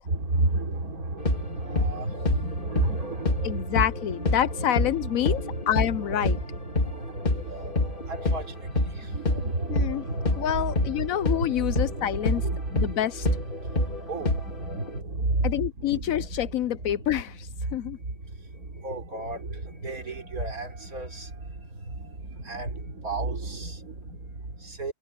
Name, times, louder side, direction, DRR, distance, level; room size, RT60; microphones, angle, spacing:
voice 1, 0.0-3.8 4.5-5.6 5.9-16.5 16.9-17.0 17.7-18.2 18.5-24.9, right 2 dB, 70° right, 4.0 m, -32 dB
sound 1, 1.2-9.0 9.3-15.0, left 2 dB, 35° left, 2.5 m, -28 dB
voice 2, 3.4-6.4 9.7-10.1 10.4-12.4 12.7-13.3 15.4-18.0, left 11 dB, 70° left, 1.0 m, -27 dB
omnidirectional pair, 1.6 m